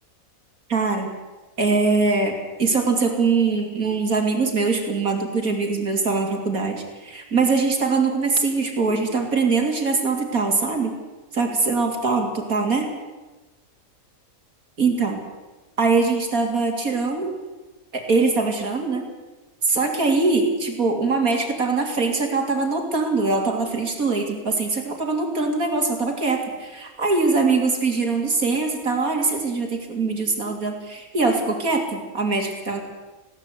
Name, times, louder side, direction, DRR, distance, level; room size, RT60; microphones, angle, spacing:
voice 1, 0.7-1.1 1.6-10.9 11.3-12.9 14.8-15.2 15.8-17.3 17.9-19.0 19.6-32.8, right 4 dB, 75° right, 3 dB, 3.4 m, -22 dB
21.0 x 16.5 x 8.2 m, 1.2 s
omnidirectional pair, 1.5 m